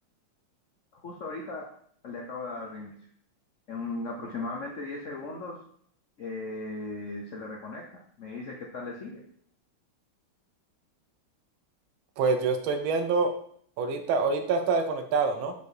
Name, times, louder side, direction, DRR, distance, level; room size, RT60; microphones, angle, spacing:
voice 1, 0.9-1.7 2.0-3.0 3.7-5.6 6.2-9.2, left 3 dB, 65° left, 0 dB, 0.7 m, -37 dB
voice 2, 12.2-13.3 13.8-15.5, right 4 dB, 75° right, 6 dB, 1.5 m, -26 dB
5.2 x 4.9 x 4.7 m, 0.62 s
omnidirectional pair, 2.4 m